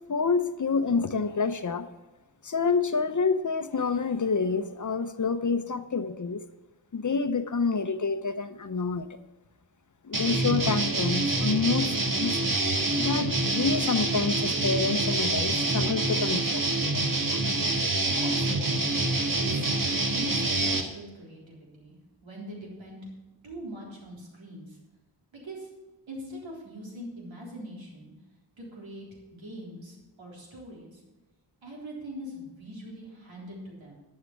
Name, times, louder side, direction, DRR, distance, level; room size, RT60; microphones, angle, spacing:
voice 1, 0.1-1.9 2.4-6.4 6.9-9.1 10.0-12.7 13.0-16.7 17.3-17.4, left 4 dB, 40° left, 10 dB, 0.8 m, -28 dB
sound 1, 10.1-20.8, right 2 dB, 45° right, 1.7 m, -26 dB
voice 2, 18.1-18.8 19.3-19.7 20.0-22.0 22.2-23.0 23.4-24.8 25.3-25.7 26.1-28.1 28.6-31.0 31.6-34.0, equal, 85° right, -3 dB, 3.9 m, -42 dB
12.0 x 6.6 x 6.0 m, 1.1 s
cardioid pair, 55°, 45 cm